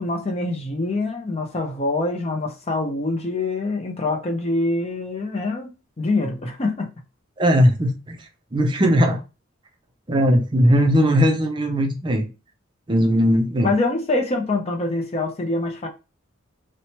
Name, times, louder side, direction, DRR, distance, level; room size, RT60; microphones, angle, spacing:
voice 1, 0.0-5.7 6.0-6.9 13.6-15.9, left 2 dB, 30° left, 0.5 m, -25 dB
voice 2, 7.4-8.2 8.5-9.2 10.1-12.2 12.9-13.7, equal, 25° right, 0.5 m, -18 dB
2.9 x 2.1 x 2.8 m
head